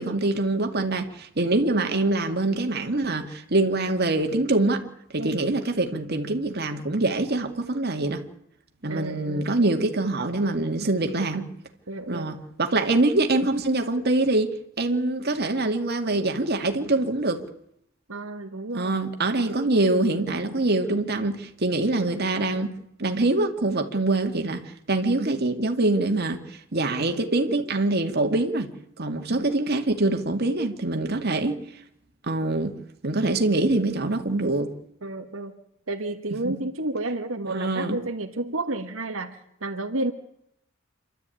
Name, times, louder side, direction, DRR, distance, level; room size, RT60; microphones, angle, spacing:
voice 1, 0.0-4.8 5.1-8.2 8.8-11.5 12.1-17.4 18.7-22.7 23.0-24.6 24.9-28.7 29.0-31.6 32.2-32.7 33.0-34.7 36.4-36.6 37.5-38.0, right 2 dB, 55° right, 4 dB, 2.2 m, -24 dB
voice 2, 8.9-9.7 11.9-12.3 18.1-18.9 29.3-29.5 35.0-35.6 35.9-40.1, right 2 dB, 85° right, 5 dB, 1.7 m, -31 dB
27.5 x 12.5 x 9.2 m, 0.78 s
head